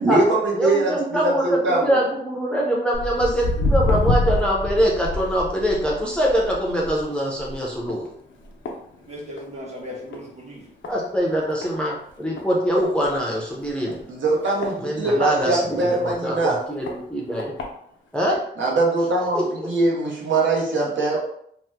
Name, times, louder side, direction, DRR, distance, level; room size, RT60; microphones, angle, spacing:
voice 1, 0.0-1.0 1.2-1.9 14.1-16.6 18.6-21.2, right 2 dB, 80° right, -2 dB, 0.7 m, -22 dB
voice 2, 0.5-8.1 10.9-14.0 14.8-17.5 18.1-18.4 19.3-19.4, equal, 5° left, -3 dB, 0.5 m, -23 dB
Walk footsteps, 2.9-9.6 9.9-10.3 10.8-10.9 11.6-11.7 12.1-12.2 12.4-12.5 13.0-13.2 13.9-15.5 16.0-16.1 16.9-17.0 17.4-17.6 18.3-18.4, left 2 dB, 90° left, 0.6 m, -26 dB
voice 3, 9.0-10.7 21.1-21.2, equal, 35° right, -4 dB, 1.1 m, -37 dB
2.8 x 2.0 x 3.3 m, 0.68 s
wide cardioid pair, 160°, 19 cm